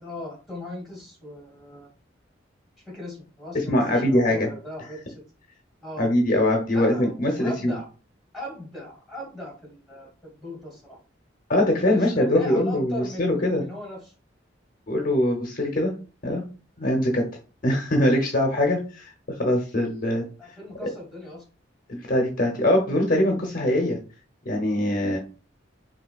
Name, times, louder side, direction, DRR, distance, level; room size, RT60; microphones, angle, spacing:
voice 1, 0.0-1.9 2.9-5.2 5.8-6.1 6.7-7.9 8.3-11.0 11.9-14.1 14.9-15.1 20.4-21.4, left 1 dB, ahead, -3 dB, 2.2 m, -38 dB
voice 2, 3.5-4.5 6.0-7.7 11.5-13.6 14.9-15.9 16.2-16.4 16.8-17.2 17.6-19.1 19.4-20.2 21.9-24.0 24.5-25.2, left 1 dB, 50° left, 2 dB, 0.8 m, -22 dB
5.5 x 2.8 x 2.3 m, 0.35 s
head